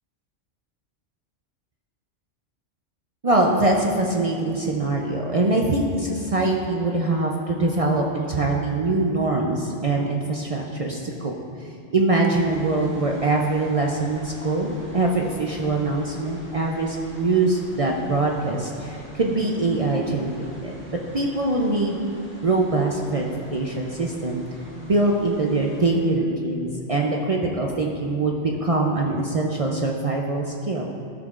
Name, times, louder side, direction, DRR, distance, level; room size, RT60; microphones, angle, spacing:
voice 1, 3.2-11.3 11.6-20.7 21.1-22.0 22.4-30.9, right 2 dB, 50° right, -1 dB, 0.4 m, -23 dB
sound 1, 12.4-25.9, equal, 10° right, 1.3 m, -45 dB
13.0 x 6.4 x 2.4 m, 2.5 s
omnidirectional pair, 1.3 m